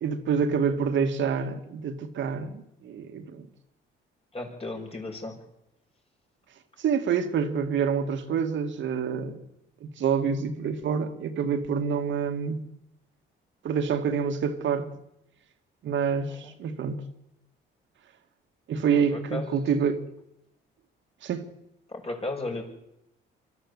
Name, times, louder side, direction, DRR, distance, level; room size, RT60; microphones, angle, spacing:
voice 1, 0.0-3.5 6.8-9.4 9.8-12.7 13.6-14.9 15.8-17.1 18.7-20.0 21.2-21.5, right 6 dB, 70° right, 2.4 m, -27 dB
voice 2, 4.3-5.4 16.4-16.5 19.1-19.7 21.9-22.6, left 2 dB, 30° left, 6.2 m, -34 dB
24.5 x 13.5 x 8.2 m
cardioid pair, 90°, 20 cm